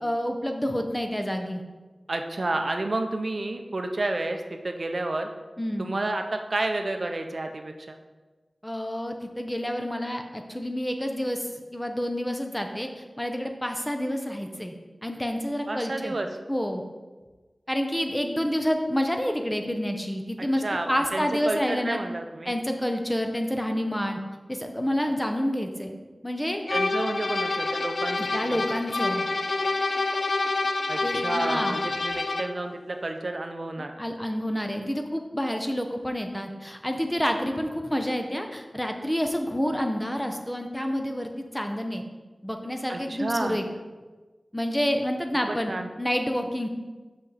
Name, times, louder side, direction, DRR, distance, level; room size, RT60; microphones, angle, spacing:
voice 1, 0.0-1.6 5.6-5.9 8.6-14.7 15.0-16.2 16.5-16.8 17.7-22.0 22.5-24.2 24.5-25.9 26.2-26.6 28.2-29.3 31.0-31.8 34.0-42.0 42.4-43.6 44.5-45.7 46.0-46.7, equal, 10° left, 4 dB, 0.7 m, -28 dB
voice 2, 2.1-5.3 5.8-8.0 15.7-16.3 20.6-22.5 26.7-28.6 30.9-33.9 42.9-43.6 45.5-45.9, right 2 dB, 60° right, 5 dB, 0.5 m, -30 dB
sound 1, 26.7-32.6, left 3 dB, 70° left, 0.3 m, -27 dB
6.0 x 5.3 x 4.0 m, 1.3 s
wide cardioid pair, 75°, 0 cm